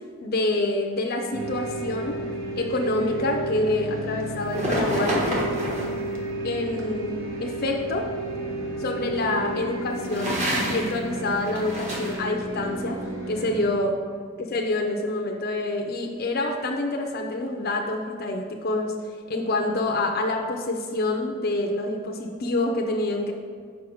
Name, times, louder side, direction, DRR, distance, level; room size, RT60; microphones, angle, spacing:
voice 1, 0.2-2.2 2.5-5.2 6.4-8.1 8.8-14.0 14.4-18.9 19.3-23.3, left 2 dB, 50° left, 1 dB, 0.5 m, -27 dB
sound 1, 1.3-13.7, right 2 dB, 75° right, 1.0 m, -32 dB
sound 2, 4.5-6.0 10.0-11.0 11.3-12.2, equal, 35° right, 1.3 m, -28 dB
5.4 x 4.9 x 6.1 m, 2.1 s
head